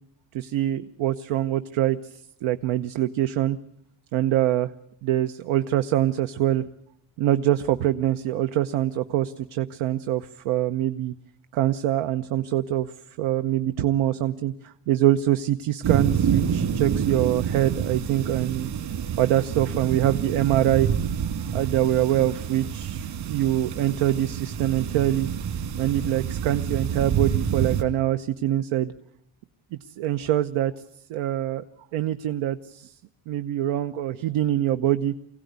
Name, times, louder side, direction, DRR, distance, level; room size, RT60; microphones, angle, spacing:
voice 1, 0.3-3.6 4.1-4.7 5.0-6.6 7.2-11.1 11.5-12.9 13.2-18.7 19.2-20.9 21.5-25.3 25.8-28.9 29.7-30.7 31.1-31.6 31.9-32.9 33.3-35.1, right 12 dB, 85° right, 10 dB, 1.0 m, -24 dB
sound 1, 15.8-27.8, right 8 dB, 55° right, 2.8 m, -28 dB
25.0 x 16.5 x 9.4 m, 0.73 s
cardioid pair, 160°, 47 cm